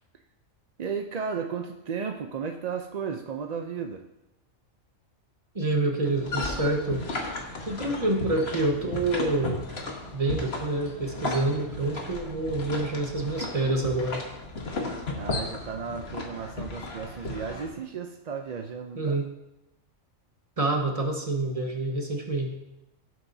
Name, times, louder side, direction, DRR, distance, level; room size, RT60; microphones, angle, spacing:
voice 1, 0.8-4.0 15.1-19.2, right 6 dB, 50° right, 4 dB, 0.5 m, -34 dB
voice 2, 5.5-7.1 7.6-9.6 10.1-14.2 19.0-19.3 20.6-22.6, right 2 dB, 30° right, 2 dB, 1.4 m, -27 dB
sound 1, 6.1-17.7, left 2 dB, 50° left, 1.6 m, -35 dB
17.0 x 7.7 x 2.7 m, 0.92 s
omnidirectional pair, 1.3 m